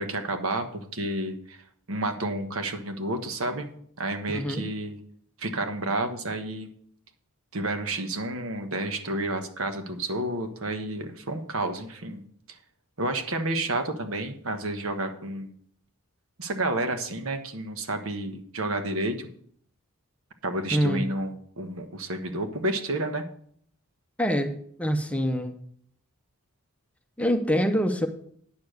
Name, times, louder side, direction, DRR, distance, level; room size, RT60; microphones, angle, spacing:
voice 1, 0.0-1.6 1.9-3.7 4.0-5.0 5.4-6.7 7.5-12.2 13.0-15.5 16.4-19.3 20.4-23.2, right 2 dB, 70° right, 6 dB, 1.3 m, -30 dB
voice 2, 4.3-4.6 20.7-21.0 24.2-24.5 24.8-25.5 27.2-28.1, equal, 5° left, 6 dB, 0.7 m, -25 dB
9.5 x 6.9 x 6.6 m, 0.62 s
head